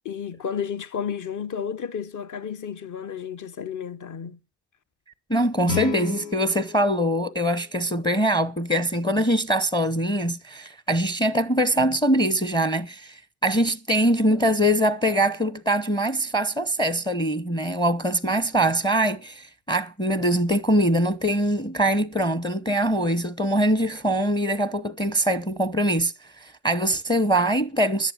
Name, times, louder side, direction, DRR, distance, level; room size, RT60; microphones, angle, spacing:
voice 1, 0.0-4.4, left 7 dB, 40° left, 1.1 m, -32 dB
voice 2, 5.3-28.1, right 1 dB, 10° left, 0.8 m, -23 dB
Guitar, 5.6-8.4, left 8 dB, 90° left, 0.9 m, -35 dB
11.0 x 9.0 x 8.4 m
hypercardioid pair, 65°, 49 cm